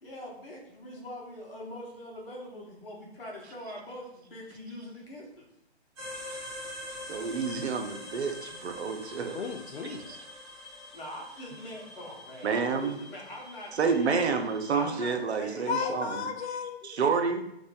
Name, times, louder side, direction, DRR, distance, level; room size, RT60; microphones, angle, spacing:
voice 1, 0.0-5.5 10.9-14.2 14.7-16.1, left 1 dB, 55° left, -2 dB, 1.0 m, -43 dB
sound 1, 6.0-14.9, left 1 dB, 20° right, 0.6 m, -45 dB
voice 2, 7.1-9.4 9.9-10.2 12.4-13.0 13.8-16.3 16.8-17.5, right 5 dB, 75° right, 6 dB, 0.5 m, -29 dB
voice 3, 9.3-10.2 15.7-16.9, left 6 dB, 75° left, 5 dB, 0.5 m, -34 dB
2.5 x 2.0 x 3.8 m, 0.82 s
figure-of-eight pair, 135°, 33 cm